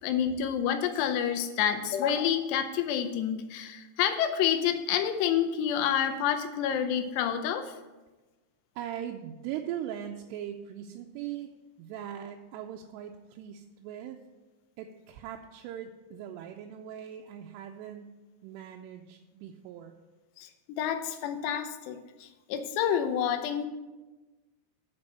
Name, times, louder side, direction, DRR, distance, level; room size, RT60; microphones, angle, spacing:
voice 1, 0.0-7.8 20.4-23.7, left 9 dB, 85° left, 8 dB, 2.7 m, -28 dB
voice 2, 8.8-11.5 11.8-14.2 14.8-18.2 18.4-19.9, right 10 dB, 85° right, 2 dB, 2.6 m, -40 dB
9.7 x 5.4 x 6.6 m, 1.1 s
omnidirectional pair, 5.0 m